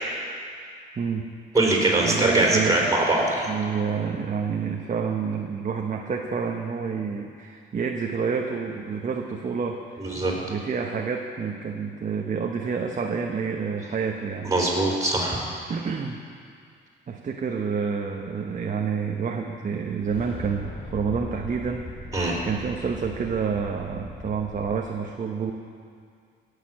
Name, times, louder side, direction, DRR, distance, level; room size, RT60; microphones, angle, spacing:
voice 1, 1.0-1.3 2.0-2.9 3.5-14.5 15.7-16.2 17.1-25.5, right 6 dB, 40° right, 2 dB, 1.0 m, -29 dB
voice 2, 1.5-3.5 10.0-10.3 14.4-15.4 22.1-22.4, right 2 dB, 15° right, -3 dB, 4.1 m, -22 dB
sound 1, 20.0-24.8, left 2 dB, 30° left, 2.8 m, -39 dB
17.0 x 6.8 x 7.5 m, 2.2 s
cardioid pair, 90°, 20 cm